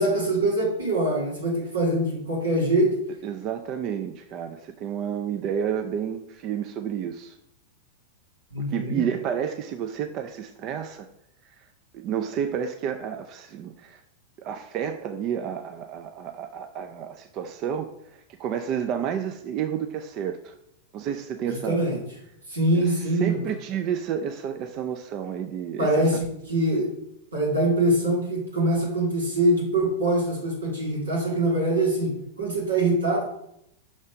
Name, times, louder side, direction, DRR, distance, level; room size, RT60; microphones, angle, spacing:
voice 1, 0.0-2.9 8.5-9.0 21.5-22.0 22.5-23.4 25.8-26.9 27.3-32.1 32.4-33.2, right 1 dB, 90° right, -3 dB, 2.7 m, -23 dB
voice 2, 3.2-7.4 8.6-11.1 11.6-11.7 11.9-14.0 14.4-20.5 20.9-21.8 22.7-26.2, right 8 dB, 45° right, 7 dB, 0.5 m, -30 dB
5.9 x 4.2 x 5.0 m, 0.76 s
hypercardioid pair, 105°, 0 cm